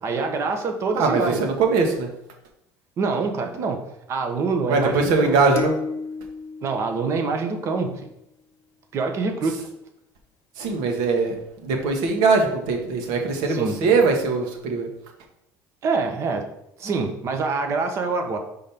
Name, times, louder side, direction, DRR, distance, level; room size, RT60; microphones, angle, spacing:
voice 1, 0.0-1.4 3.0-3.8 4.1-5.4 6.6-8.0 8.9-9.7 13.5-13.8 15.8-16.4 16.8-18.4, right 4 dB, 45° right, 5 dB, 1.1 m, -25 dB
voice 2, 0.9-2.1 4.7-5.7 10.6-11.3 11.6-14.9, right 4 dB, 75° right, 3 dB, 1.5 m, -21 dB
sound 1, 5.6-8.0, left 5 dB, 40° left, 0.9 m, -34 dB
5.1 x 3.9 x 5.9 m, 0.81 s
cardioid pair, 130°, 7 cm